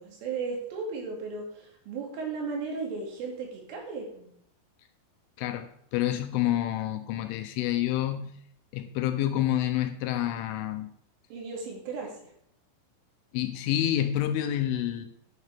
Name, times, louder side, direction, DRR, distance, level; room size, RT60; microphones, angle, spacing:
voice 1, 0.0-4.3 11.3-12.3, right 4 dB, 70° right, 0 dB, 4.9 m, -35 dB
voice 2, 5.4-8.4 8.7-10.9 13.3-15.1, left 12 dB, 80° left, 8 dB, 3.1 m, -28 dB
10.5 x 10.5 x 3.5 m, 0.68 s
omnidirectional pair, 5.9 m